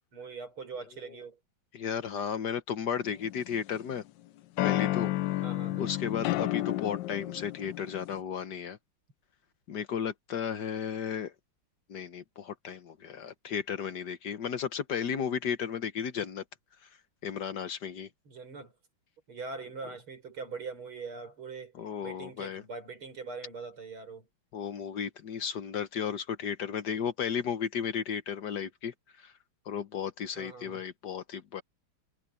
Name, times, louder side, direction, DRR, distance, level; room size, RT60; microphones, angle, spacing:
voice 1, 0.1-1.4 5.4-5.9 6.5-6.7 18.2-18.7 19.3-21.7 22.0-24.3 30.4-30.8, right 4 dB, 85° right, 6.4 m, -42 dB
voice 2, 1.7-4.0 4.6-5.4 5.8-8.8 9.7-11.3 11.9-16.4 17.2-18.1 21.8-22.6 24.5-29.3 29.7-31.6, left 7 dB, 60° left, 1.5 m, -34 dB
sound 1, 3.0-3.9 4.6-8.2, left 16 dB, 75° left, 1.1 m, -31 dB
omnidirectional pair, 2.3 m